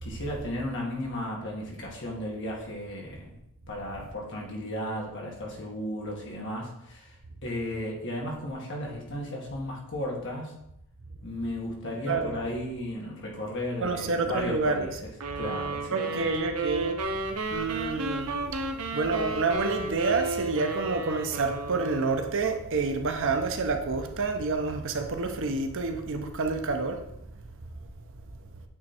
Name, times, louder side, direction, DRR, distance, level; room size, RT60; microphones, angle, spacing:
voice 1, 0.0-3.4 3.7-10.5 11.2-14.9 15.4-16.3, left 1 dB, 55° left, 1.8 m, -35 dB
voice 2, 12.1-12.4 13.8-14.9 15.9-17.0 17.5-18.6 18.9-27.0, right 3 dB, 60° right, 0.8 m, -28 dB
sound 1, 15.2-22.4, right 2 dB, 90° right, 0.8 m, -33 dB
8.5 x 3.2 x 4.4 m
head